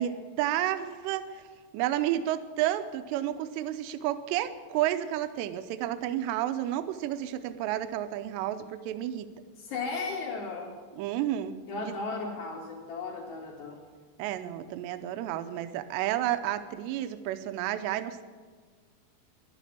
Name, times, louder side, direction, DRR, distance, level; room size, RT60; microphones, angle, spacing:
voice 1, 0.0-1.4 1.7-9.3 11.0-11.9 14.2-18.2, right 12 dB, 85° right, 10 dB, 2.9 m, -31 dB
voice 2, 9.6-10.7 11.7-13.8, left 4 dB, 60° left, -8 dB, 4.2 m, -35 dB
11.5 x 11.5 x 8.3 m, 1.5 s
omnidirectional pair, 5.1 m